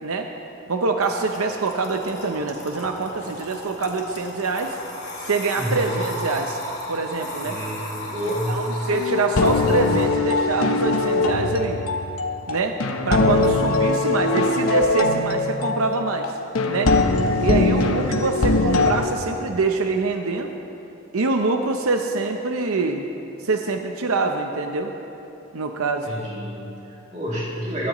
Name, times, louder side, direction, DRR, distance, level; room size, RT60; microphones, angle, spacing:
voice 1, 0.7-4.8 5.2-6.6 6.9-7.6 8.5-11.8 12.5-12.8 13.1-16.3 16.7-17.0 17.4-20.5 21.1-23.1 23.4-24.9 25.5-26.1, right 3 dB, 85° right, 4 dB, 0.7 m, -25 dB
sound 1, 1.0-10.1, left 1 dB, 50° left, 3.5 m, -35 dB
voice 2, 5.5-5.9 7.4-8.8 26.0-27.9, equal, 30° right, -5 dB, 2.8 m, -29 dB
sound 2, 8.9-19.1, left 3 dB, 85° left, 0.9 m, -21 dB
22.0 x 12.5 x 3.1 m, 3.0 s
head